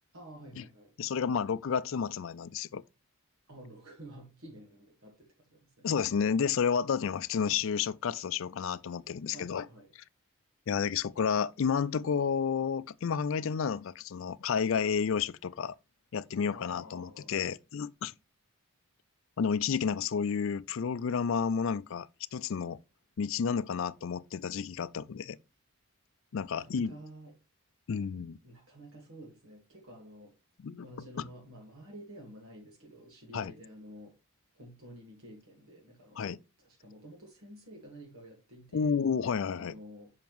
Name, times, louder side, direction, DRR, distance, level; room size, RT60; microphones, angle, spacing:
voice 1, 0.1-0.9 3.5-5.9 9.3-9.9 16.3-17.3 26.6-27.3 28.1-28.2 28.4-30.3 30.8-34.1 34.5-39.0 39.5-40.1, right 1 dB, 65° right, 1.7 m, -51 dB
voice 2, 1.0-2.8 5.8-9.7 10.7-15.7 16.1-18.1 19.4-22.8 23.2-25.4 26.3-27.0 27.9-28.4 30.6-30.9 33.3-33.5 36.2-36.4 38.7-39.8, left 6 dB, 60° left, 0.4 m, -31 dB
7.2 x 5.7 x 3.0 m
head